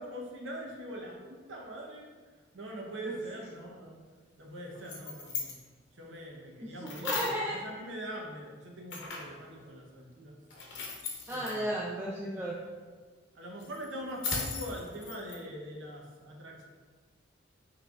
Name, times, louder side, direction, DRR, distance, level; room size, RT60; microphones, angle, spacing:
voice 1, 0.0-2.0 2.5-4.0 4.4-5.5 6.0-7.1 7.4-10.4 11.3-11.6 13.4-16.6, right 1 dB, 70° right, -1 dB, 0.8 m, -42 dB
sound 1, 4.7-5.6 6.9-7.5 8.9-9.4 10.5-11.6 13.6-15.4, left 4 dB, 60° left, 0.8 m, -37 dB
voice 2, 6.6-7.6 11.3-12.6, right 1 dB, 10° right, -5 dB, 0.3 m, -34 dB
5.8 x 3.3 x 2.4 m, 1.5 s
head